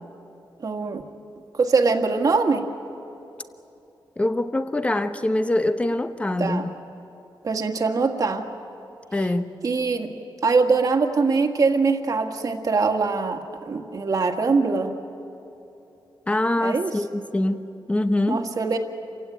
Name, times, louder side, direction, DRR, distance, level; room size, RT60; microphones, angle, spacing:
voice 1, 0.6-1.0 1.5-2.6 6.4-6.7 7.4-8.5 9.6-10.1 10.4-14.9 16.6-16.9 18.3-18.8, right 4 dB, 45° right, 4 dB, 1.8 m, -22 dB
voice 2, 4.2-6.7 9.1-9.5 16.3-17.6 17.9-18.5, left 1 dB, 15° left, 9 dB, 1.0 m, -24 dB
29.0 x 16.5 x 9.2 m, 2.9 s
wide cardioid pair, 170°, 8 cm